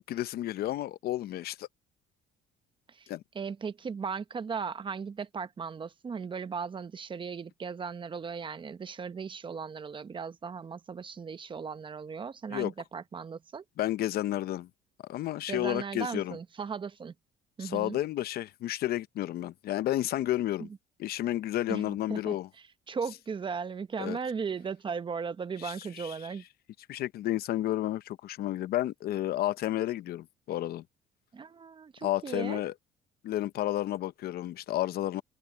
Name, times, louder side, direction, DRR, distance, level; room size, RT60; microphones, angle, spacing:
voice 1, 0.0-1.7 3.1-3.2 12.5-12.7 13.8-14.7 15.1-16.4 17.6-20.7 21.0-22.5 24.0-24.2 25.6-26.3 26.9-30.8 32.0-32.7 33.2-35.2, left 14 dB, 65° left, 0.7 m, -31 dB
voice 2, 3.3-13.6 15.5-17.1 17.6-18.0 20.6-20.7 21.7-22.4 22.9-26.4 31.3-32.6, right 5 dB, 30° right, 0.8 m, -37 dB
open air
cardioid pair, 110°, 17 cm